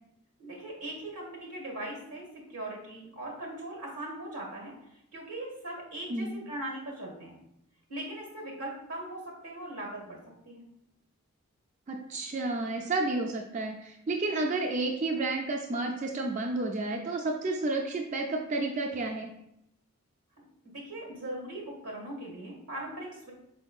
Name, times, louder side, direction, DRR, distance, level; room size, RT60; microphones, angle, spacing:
voice 1, 0.4-2.2 2.5-4.7 5.1-7.4 7.9-10.2 10.4-10.6 20.4-23.3, right 1 dB, 85° right, -1 dB, 1.7 m, -40 dB
voice 2, 6.1-6.4 11.9-19.3, right 2 dB, 35° right, 2 dB, 0.3 m, -31 dB
4.5 x 4.4 x 2.3 m, 0.80 s
head